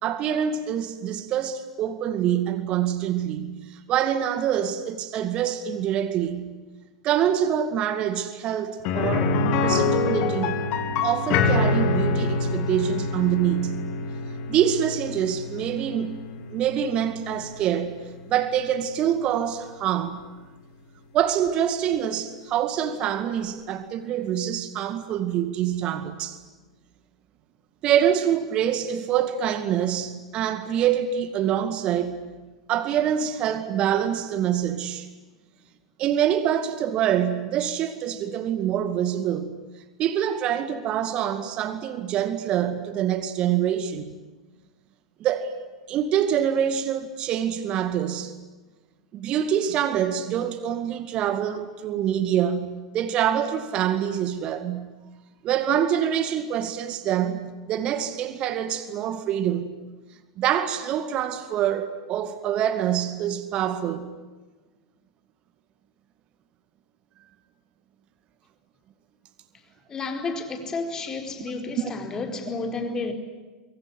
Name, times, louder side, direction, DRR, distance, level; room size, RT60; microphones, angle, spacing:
voice 1, 0.0-6.5 7.0-10.6 11.0-13.9 14.5-16.2 16.5-18.0 18.3-20.2 21.1-26.4 27.8-32.2 32.7-35.1 36.0-39.6 40.0-44.1 45.2-45.6 45.9-48.3 49.1-54.9 55.4-59.7 60.4-64.1 71.8-71.9, right 10 dB, 35° right, 2.2 m, -25 dB
sound 1, 8.8-18.6 18.9-19.0 21.5-21.6, left 3 dB, 40° left, 3.0 m, -26 dB
voice 2, 69.9-73.1, left 3 dB, 20° left, 4.5 m, -31 dB
24.5 x 24.5 x 9.7 m
figure-of-eight pair, 90°, 3 cm